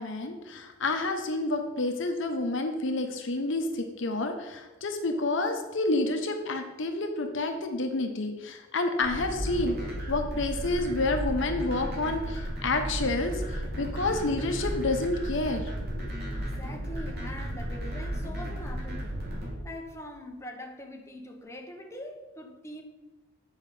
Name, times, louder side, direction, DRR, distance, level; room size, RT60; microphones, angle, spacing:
voice 1, 0.0-9.8 10.1-16.1, left 2 dB, 60° left, 0.9 m, -29 dB
sound 1, 9.0-19.5, equal, 50° right, 2.6 m, -34 dB
voice 2, 16.4-19.3 19.6-22.8, left 1 dB, 15° left, 0.9 m, -43 dB
8.8 x 5.5 x 4.9 m
head